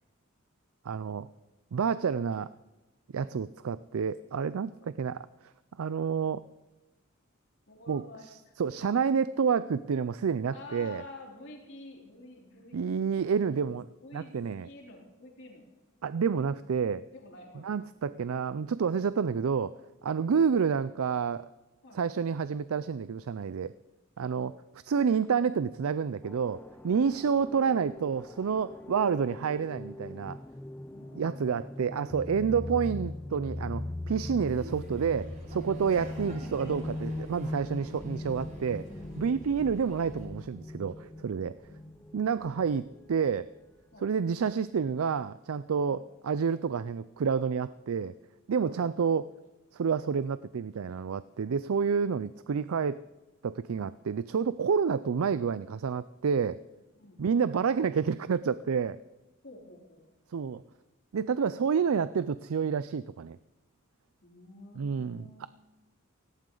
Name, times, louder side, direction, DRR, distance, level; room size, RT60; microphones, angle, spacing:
voice 1, 0.8-1.3 1.7-2.5 3.1-4.7 5.0-5.2 5.8-6.4 7.9-8.0 8.6-11.0 12.7-13.9 14.1-14.7 16.0-17.0 17.6-21.5 21.9-23.7 24.2-24.5 24.9-30.4 31.2-38.9 39.2-41.5 42.1-43.5 44.0-48.1 48.5-49.3 49.7-53.0 53.4-56.6 57.2-59.0 60.3-60.6 61.1-63.4 64.8-65.5, right 6 dB, 85° right, 15 dB, 0.4 m, -29 dB
voice 2, 7.7-9.1 10.5-13.5 14.0-14.3 14.6-15.7 17.1-17.7 20.2-20.4 21.8-22.0 24.3-24.5 27.1-27.2 30.9-32.0 32.6-32.7 35.8-36.0 39.3-39.6 41.3-42.2 43.9-44.1 45.8-46.0 48.6-48.8 57.0-57.2 59.4-60.1 64.2-65.5, left 2 dB, 60° left, -1 dB, 3.5 m, -50 dB
sound 1, 26.2-43.4, left 1 dB, 10° left, 0.5 m, -41 dB
Laughter, 34.5-40.3, equal, 35° right, 6.3 m, -47 dB
17.0 x 16.5 x 3.9 m, 1.1 s
head